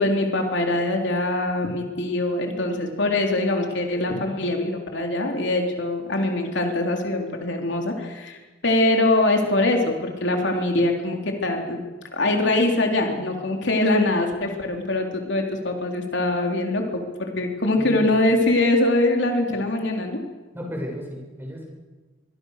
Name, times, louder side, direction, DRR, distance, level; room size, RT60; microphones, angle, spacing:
voice 1, 0.0-11.8 12.1-20.2, left 2 dB, 65° left, 2 dB, 3.7 m, -23 dB
voice 2, 17.8-18.1 20.5-21.7, equal, 10° right, 0 dB, 7.0 m, -34 dB
25.5 x 22.5 x 6.6 m, 1.3 s
head